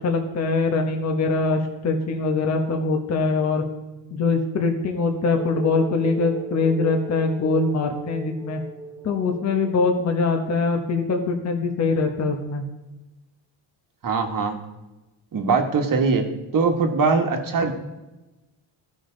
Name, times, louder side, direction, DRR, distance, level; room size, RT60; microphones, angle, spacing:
voice 1, 0.0-3.6 4.1-8.6 9.0-12.6, left 3 dB, 35° left, 3 dB, 1.1 m, -23 dB
sound 1, 5.4-10.0, right 3 dB, 5° left, 0.9 m, -38 dB
voice 2, 14.0-14.6 15.3-16.2 16.5-17.7, right 4 dB, 40° right, 5 dB, 1.4 m, -21 dB
14.0 x 5.4 x 3.8 m, 1.1 s
cardioid pair, 120°, 49 cm